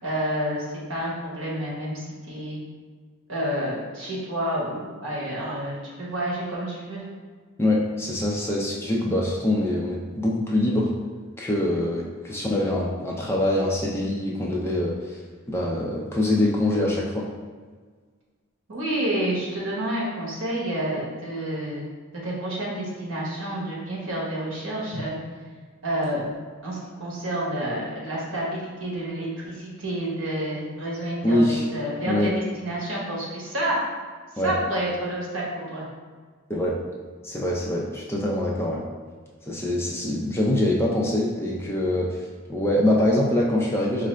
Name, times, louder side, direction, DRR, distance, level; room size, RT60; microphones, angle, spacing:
voice 1, 0.0-2.6 3.3-7.0 18.7-21.9 22.1-25.2 25.8-26.2 26.6-33.8 34.4-35.9, right 1 dB, 70° right, -4 dB, 1.1 m, -29 dB
voice 2, 7.6-10.9 11.4-15.2 15.5-17.3 31.2-31.7 32.0-32.3 34.4-34.5 36.5-36.8 37.2-38.8 39.4-42.2 42.5-44.1, left 1 dB, 10° left, -3 dB, 0.4 m, -24 dB
4.5 x 2.5 x 3.1 m, 1.5 s
head